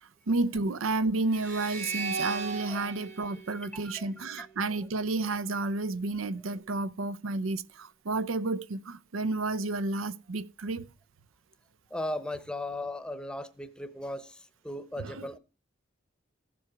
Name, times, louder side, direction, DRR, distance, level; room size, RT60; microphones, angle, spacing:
voice 1, 0.0-10.9 15.0-15.3, right 3 dB, 85° right, 0.6 m, -31 dB
sound 1, 1.3-4.6, right 4 dB, 65° right, 4.2 m, -37 dB
voice 2, 3.5-4.5 11.9-15.4, left 1 dB, 5° left, 0.8 m, -38 dB
14.5 x 7.8 x 4.7 m
head